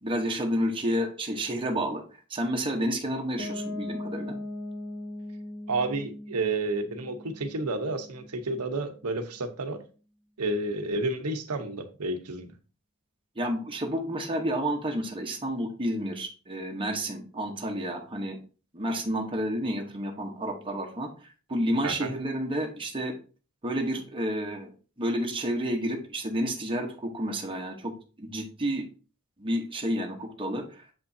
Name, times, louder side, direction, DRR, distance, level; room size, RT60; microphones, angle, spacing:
voice 1, 0.0-2.0 2.3-4.4 13.4-18.4 18.7-23.1 23.6-24.7 25.0-28.9 29.4-30.8, equal, 25° right, 1.1 m, -30 dB
Piano, 3.4-9.1, left 1 dB, 35° left, 1.8 m, -39 dB
voice 2, 5.7-9.8 10.4-12.5 21.8-22.1, right 2 dB, 85° right, 0.9 m, -30 dB
7.5 x 5.3 x 2.7 m
head